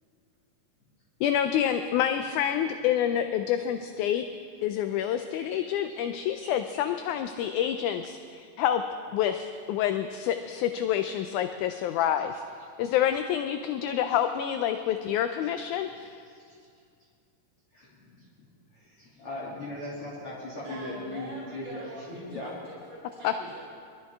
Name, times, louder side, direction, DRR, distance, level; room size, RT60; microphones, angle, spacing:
voice 1, 1.2-4.2 4.6-8.8 9.1-12.3 12.8-16.2 23.2-23.3, left 10 dB, 80° left, 8 dB, 1.9 m, -27 dB
voice 2, 17.7-18.1 18.7-22.5, left 1 dB, 45° left, -8 dB, 3.4 m, -39 dB
voice 3, 20.6-23.7, right 2 dB, 55° right, -6 dB, 3.3 m, -43 dB
22.5 x 13.0 x 3.6 m, 2.2 s
omnidirectional pair, 3.8 m